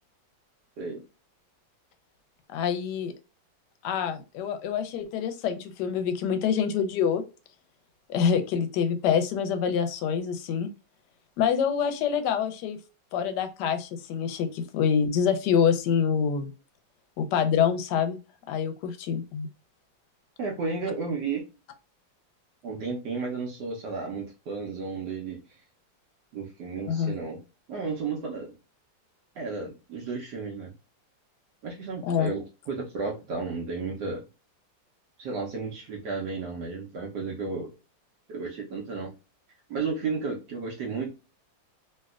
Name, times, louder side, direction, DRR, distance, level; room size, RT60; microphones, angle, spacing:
voice 1, 2.5-3.1 3.8-7.2 8.1-10.7 11.4-12.8 13.1-16.5 17.2-18.2 18.5-19.5 26.9-27.1 32.0-32.3, left 7 dB, 70° left, 8 dB, 1.1 m, -26 dB
voice 2, 20.4-21.4 22.6-25.4 26.3-27.4 27.7-28.6 29.4-30.7 31.6-34.2 35.2-37.7 38.3-39.1 39.7-41.1, right 4 dB, 70° right, -1 dB, 1.2 m, -33 dB
3.2 x 2.8 x 2.3 m, 0.30 s
omnidirectional pair, 2.1 m